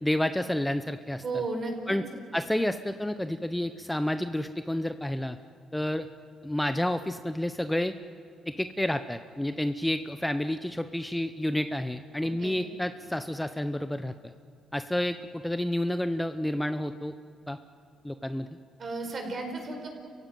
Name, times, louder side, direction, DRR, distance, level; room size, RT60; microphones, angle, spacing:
voice 1, 0.0-1.4 1.9-2.0 2.3-5.4 5.7-6.1 6.4-7.9 8.5-14.3 14.7-17.1 17.5-17.6 18.0-18.5, left 1 dB, 5° left, 9 dB, 0.7 m, -30 dB
voice 2, 1.2-2.0 12.4-12.6 18.8-19.9, right 3 dB, 45° right, 4 dB, 4.9 m, -34 dB
29.5 x 16.0 x 9.3 m, 2.2 s
cardioid pair, 90°, 0 cm